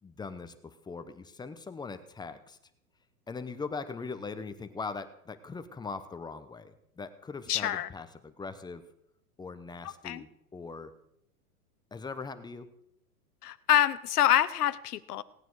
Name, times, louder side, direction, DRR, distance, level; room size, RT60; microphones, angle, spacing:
voice 1, 0.0-2.6 3.3-8.8 9.4-10.9 11.9-12.7, left 4 dB, 10° left, 11 dB, 0.8 m, -41 dB
voice 2, 7.5-7.9 10.0-10.2 13.4-15.2, left 12 dB, 80° left, 16 dB, 0.9 m, -26 dB
18.0 x 9.1 x 4.8 m, 0.77 s
hypercardioid pair, 115°, 46 cm